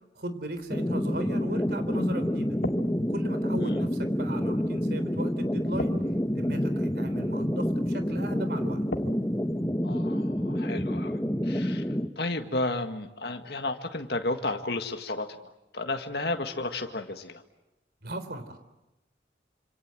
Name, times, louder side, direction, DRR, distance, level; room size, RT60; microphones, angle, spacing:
voice 1, 0.2-2.6 3.1-6.0 6.4-8.8 18.0-18.6, right 1 dB, 55° right, 10 dB, 3.6 m, -37 dB
sound 1, 0.5-9.7, left 1 dB, 80° left, 2.3 m, -44 dB
sound 2, 0.7-12.1, equal, 15° left, 1.1 m, -28 dB
voice 2, 9.8-11.8 12.2-15.3 15.7-17.4, left 2 dB, 60° left, 5 dB, 1.9 m, -32 dB
27.0 x 27.0 x 7.7 m, 0.96 s
head